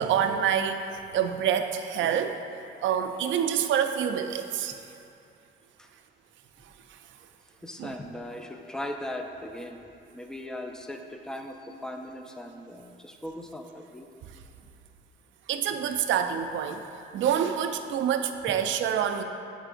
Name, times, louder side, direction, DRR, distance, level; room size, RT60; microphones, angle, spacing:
voice 1, 0.0-2.3 2.8-4.8 7.8-7.9 15.5-16.8 17.1-19.2, right 8 dB, 75° right, 7 dB, 0.4 m, -27 dB
voice 2, 7.5-9.9 10.1-14.2, left 1 dB, 5° left, 4 dB, 0.4 m, -39 dB
8.0 x 5.0 x 2.5 m, 2.6 s
cardioid pair, 90°, 20 cm